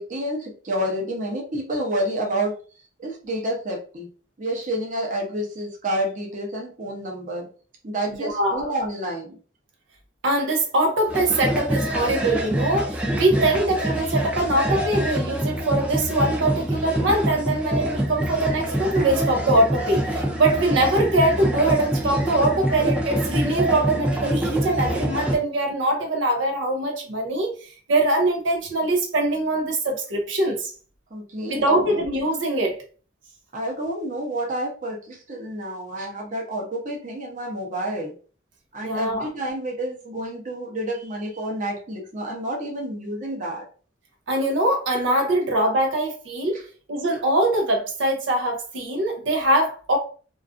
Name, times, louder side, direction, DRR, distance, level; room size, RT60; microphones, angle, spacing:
voice 1, 0.0-2.6 3.0-4.1 4.4-7.5 7.8-9.4 31.1-32.0 33.5-38.1 38.7-43.7, right 1 dB, 45° right, 0.7 m, -29 dB
voice 2, 8.2-8.6 10.2-30.7 31.5-32.8 38.8-39.3 44.3-46.6 46.9-50.0, right 1 dB, 90° right, 0.6 m, -22 dB
sound 1, 11.1-25.4, right 1 dB, 5° right, 0.4 m, -25 dB
2.4 x 2.4 x 2.4 m
head